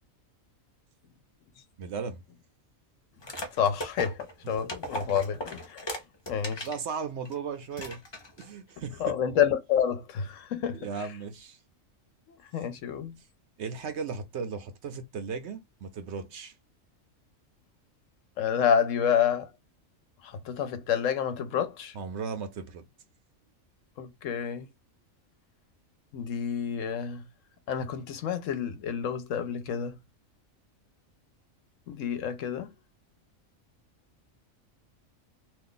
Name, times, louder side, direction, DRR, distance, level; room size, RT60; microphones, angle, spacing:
voice 1, 1.8-2.2 4.4-4.7 6.6-8.0 8.4-9.2 10.7-11.6 13.2-13.3 13.6-16.5 21.9-22.8, right 5 dB, 65° right, 0.8 m, -36 dB
sound 1, 3.2-6.8 7.3-7.4 7.7-8.5, equal, 25° left, 0.6 m, -38 dB
voice 2, 3.6-5.9 6.3-6.7 9.0-10.9 12.3-13.1 18.4-19.5 20.2-22.0 24.0-24.7 26.1-27.3 27.7-30.0 31.9-32.7, left 8 dB, 70° left, 1.0 m, -29 dB
2.7 x 2.4 x 3.7 m
omnidirectional pair, 1.4 m